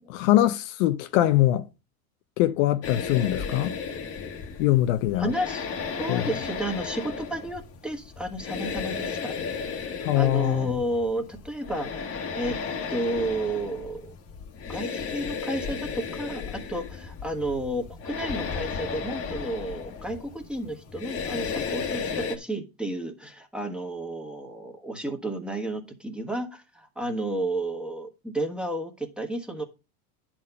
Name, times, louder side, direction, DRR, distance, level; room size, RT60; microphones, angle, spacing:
voice 1, 0.1-1.7 2.4-3.8 4.6-5.3 6.1-6.3 10.0-10.8, left 14 dB, 60° left, 0.7 m, -22 dB
sound 1, 2.8-22.4, left 5 dB, 30° left, 1.3 m, -34 dB
voice 2, 5.2-5.7 6.0-9.3 9.6-12.6 12.9-14.1 14.7-29.6, right 1 dB, ahead, 1.3 m, -32 dB
10.5 x 4.4 x 5.5 m
supercardioid pair, 135°, 45 cm